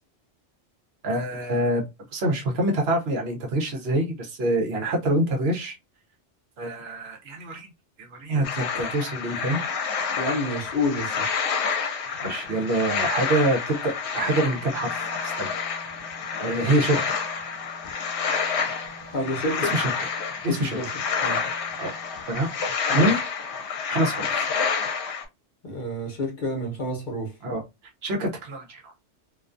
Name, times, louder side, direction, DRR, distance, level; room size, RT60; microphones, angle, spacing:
voice 1, 1.0-1.8 2.1-5.7 6.6-7.7 8.0-9.6 12.2-15.5 16.4-17.1 19.6-19.9 20.4-20.8 21.8-21.9 22.3-22.5 22.9-23.2 23.9-24.5 27.4-27.6 28.0-28.9, right 1 dB, 65° right, 0.9 m, -25 dB
sound 1, 8.4-25.2, left 6 dB, 75° left, 0.9 m, -29 dB
voice 2, 10.2-11.3 19.1-19.7 20.5-20.9 21.2-21.4 22.9-23.1 25.6-27.3, left 1 dB, 50° left, 0.8 m, -29 dB
Wind instrument woodwind instrument, 14.2-22.3, right 1 dB, 15° right, 0.5 m, -47 dB
2.4 x 2.2 x 2.4 m
omnidirectional pair, 1.2 m